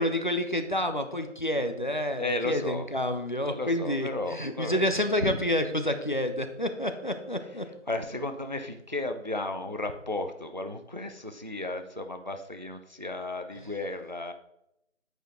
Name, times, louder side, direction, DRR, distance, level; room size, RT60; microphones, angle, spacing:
voice 1, 0.0-7.7, left 1 dB, 40° left, 6 dB, 0.5 m, -29 dB
voice 2, 2.2-2.9 3.4-4.9 5.2-5.4 7.4-14.3, left 2 dB, 40° right, 7 dB, 0.4 m, -34 dB
9.0 x 5.1 x 3.7 m, 0.79 s
figure-of-eight pair, 165°, 38 cm